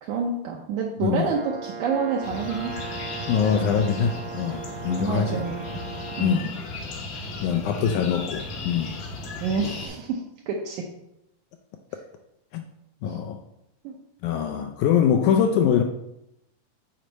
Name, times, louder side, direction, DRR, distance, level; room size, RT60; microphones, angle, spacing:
voice 1, 0.0-2.7 4.9-5.6 6.2-6.4 9.4-10.8 13.1-13.2 13.8-14.0, right 5 dB, 75° right, -1 dB, 1.9 m, -28 dB
voice 2, 1.0-1.3 3.3-5.5 6.2-6.5 7.4-8.9 12.5-12.6 13.0-13.4 14.2-15.8, left 8 dB, 80° left, 5 dB, 1.8 m, -23 dB
Brass instrument, 1.2-6.5, right 5 dB, 90° right, 2.4 m, -38 dB
sound 1, 2.2-9.9, left 2 dB, 65° left, 1.5 m, -36 dB
8.4 x 4.4 x 3.9 m, 0.84 s
omnidirectional pair, 3.9 m